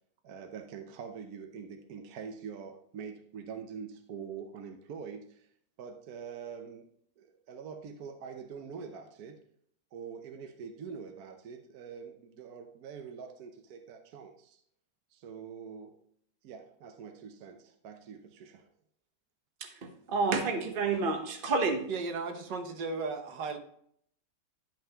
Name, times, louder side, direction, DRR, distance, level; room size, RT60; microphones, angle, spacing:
voice 1, 0.2-5.5 5.8-6.9 7.2-9.4 9.9-14.6 15.1-16.0 16.4-18.7, right 6 dB, 65° right, 5 dB, 1.2 m, -44 dB
voice 2, 19.6-21.9, right 4 dB, 35° right, 4 dB, 1.1 m, -30 dB
voice 3, 21.9-23.6, right 4 dB, 85° right, 6 dB, 1.6 m, -35 dB
12.0 x 5.6 x 2.9 m, 0.67 s
omnidirectional pair, 1.8 m